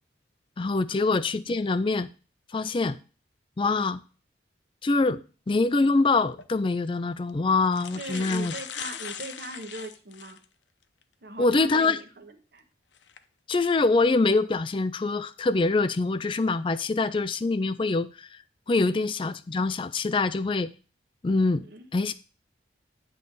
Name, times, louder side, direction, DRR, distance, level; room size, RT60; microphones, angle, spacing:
voice 1, 0.6-2.1 2.5-3.0 3.6-4.0 4.8-8.5 11.4-12.0 13.5-18.4 18.7-20.7 21.2-21.6 21.9-22.1, left 3 dB, 25° left, 0.4 m, -24 dB
sound 1, 6.3-6.5 7.3-7.4 7.6-10.4 11.0-11.1 13.0-13.2 13.8-14.0, left 8 dB, 75° left, 0.6 m, -39 dB
voice 2, 7.9-10.4 11.2-12.6 18.7-19.1 21.6-21.9, right 2 dB, 55° right, 1.1 m, -40 dB
9.5 x 3.2 x 6.7 m
head